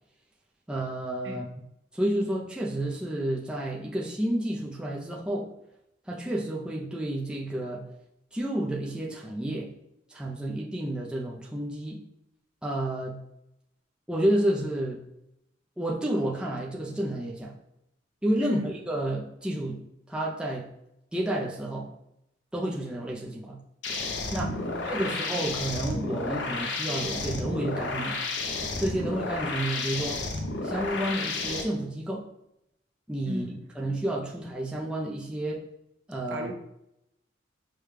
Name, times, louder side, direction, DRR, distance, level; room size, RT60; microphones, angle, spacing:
voice 1, 0.7-1.5 1.9-5.5 6.1-7.8 8.3-9.7 10.1-12.0 12.6-13.2 14.1-15.0 15.8-17.6 18.2-19.8 20.1-20.7 21.1-21.9 22.5-23.6 24.3-24.5 24.9-28.2 28.8-30.2 30.6-32.3 33.1-35.6 36.1-36.5, right 1 dB, 5° right, -3 dB, 0.4 m, -30 dB
sound 1, 23.8-31.6, left 3 dB, 70° left, 0.6 m, -32 dB
voice 2, 24.4-25.2 33.3-33.5 36.3-36.5, equal, 70° right, 3 dB, 0.6 m, -36 dB
4.9 x 2.2 x 3.2 m, 0.80 s
head